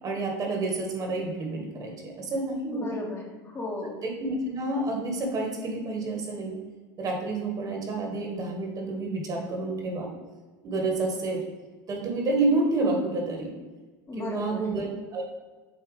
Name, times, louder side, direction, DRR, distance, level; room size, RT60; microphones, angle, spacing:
voice 1, 0.0-2.9 4.0-6.6 7.0-10.1 10.6-11.4 11.9-13.5 14.2-15.2, right 2 dB, 40° right, 1 dB, 1.8 m, -29 dB
voice 2, 2.7-4.1 14.1-14.7, left 2 dB, 30° left, -1 dB, 1.4 m, -36 dB
7.8 x 2.9 x 5.1 m, 1.3 s
hypercardioid pair, 95°, 10 cm